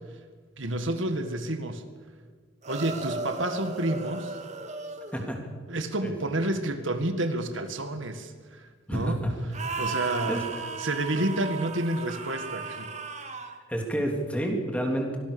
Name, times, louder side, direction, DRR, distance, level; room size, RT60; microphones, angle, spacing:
voice 1, 0.6-1.8 2.7-4.4 5.7-9.2 9.8-10.5 10.8-12.9, right 1 dB, 65° right, 8 dB, 1.9 m, -29 dB
sound 1, 2.6-5.4 9.5-13.6, right 4 dB, 35° right, 2.2 m, -36 dB
voice 2, 8.9-9.3 10.3-10.4 11.3-11.4 13.7-15.2, right 1 dB, 5° left, 2 dB, 3.3 m, -29 dB
24.5 x 18.5 x 7.0 m, 1.5 s
head